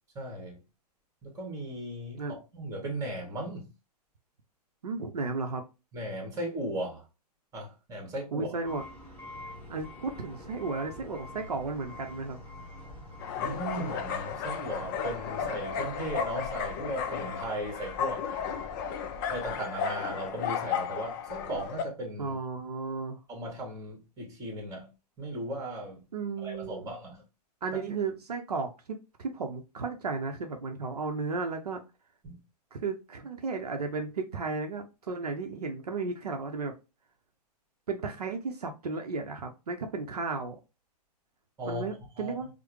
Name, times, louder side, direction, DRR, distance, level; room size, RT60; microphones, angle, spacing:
voice 1, 0.1-0.6 1.2-3.7 5.9-7.0 7.5-8.5 13.4-18.2 19.3-22.3 23.3-24.9 25.2-26.0 26.4-27.2 32.2-32.4 41.6-41.8 42.1-42.3, right 1 dB, 15° right, 1.3 m, -37 dB
voice 2, 4.8-5.6 8.3-8.8 9.7-12.4 22.2-23.2 26.1-26.9 27.6-31.8 32.7-36.7 37.9-40.6 41.7-42.5, right 4 dB, 65° right, 0.6 m, -34 dB
sound 1, 8.6-19.5, left 2 dB, 10° left, 1.1 m, -47 dB
sound 2, 13.2-21.8, left 7 dB, 30° left, 0.4 m, -34 dB
4.6 x 2.0 x 3.1 m
figure-of-eight pair, 110°, 21 cm